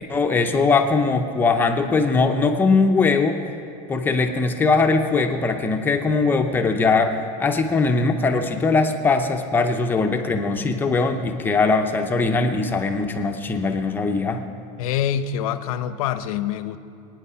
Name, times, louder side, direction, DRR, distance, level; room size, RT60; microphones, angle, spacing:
voice 1, 0.1-3.4 3.9-14.4, left 4 dB, 10° left, 4 dB, 0.6 m, -20 dB
voice 2, 14.8-16.8, left 9 dB, 80° left, 11 dB, 0.9 m, -25 dB
25.0 x 9.3 x 5.7 m, 2.5 s
supercardioid pair, 175°, 18 cm